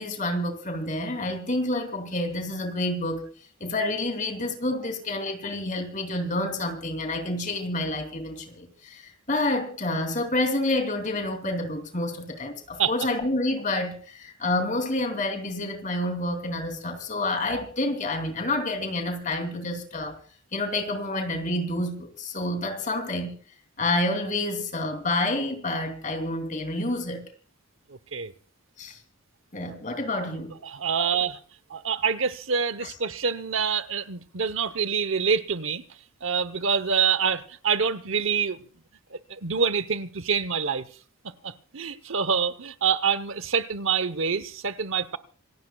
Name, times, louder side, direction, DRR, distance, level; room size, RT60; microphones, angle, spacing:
voice 1, 0.0-3.3 3.6-20.2 20.5-23.4 23.8-27.2 28.8-29.0 29.5-30.6 31.0-31.1 32.8-32.9, left 2 dB, 35° left, 3.1 m, -28 dB
voice 2, 30.6-31.4 31.7-35.8 36.2-38.6 39.1-40.9 41.4-45.2, right 6 dB, 65° right, 0.9 m, -26 dB
27.0 x 17.0 x 2.3 m
head